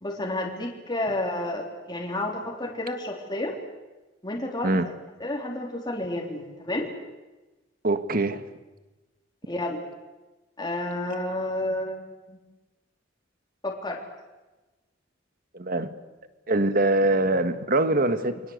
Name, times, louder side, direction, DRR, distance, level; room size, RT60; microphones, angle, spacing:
voice 1, 0.0-3.6 4.2-4.7 5.2-6.9 9.5-9.8 10.6-12.0 12.3-12.4 13.6-14.0, left 1 dB, 20° left, -1 dB, 3.6 m, -30 dB
voice 2, 7.8-8.4 15.5-15.9 16.5-18.4, right 2 dB, 50° right, 10 dB, 1.7 m, -23 dB
29.5 x 23.5 x 8.1 m, 1.1 s
head